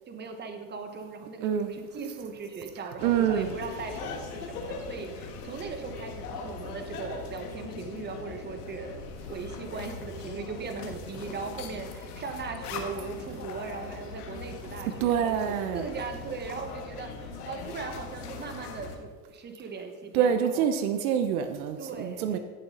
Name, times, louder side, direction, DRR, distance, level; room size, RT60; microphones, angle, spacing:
voice 1, 0.1-9.0 9.3-20.7 21.8-22.4, right 4 dB, 20° right, 5 dB, 1.4 m, -39 dB
voice 2, 1.4-1.7 2.8-3.5 15.0-15.9 20.1-22.4, right 8 dB, 70° right, 8 dB, 0.9 m, -26 dB
sound 1, 3.0-19.0, left 4 dB, 80° left, 1.9 m, -40 dB
15.5 x 7.3 x 4.0 m, 1.5 s
supercardioid pair, 110°, 45 cm